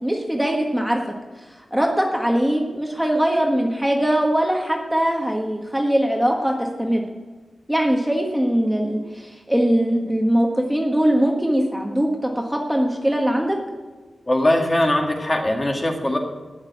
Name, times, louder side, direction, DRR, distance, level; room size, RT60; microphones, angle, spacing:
voice 1, 0.0-1.0 1.4-7.0 7.7-13.6, right 1 dB, 5° right, 1 dB, 1.5 m, -21 dB
voice 2, 14.3-16.2, left 1 dB, 25° left, 2 dB, 1.9 m, -20 dB
16.5 x 6.6 x 9.4 m, 1.3 s
wide cardioid pair, 155°, 0 cm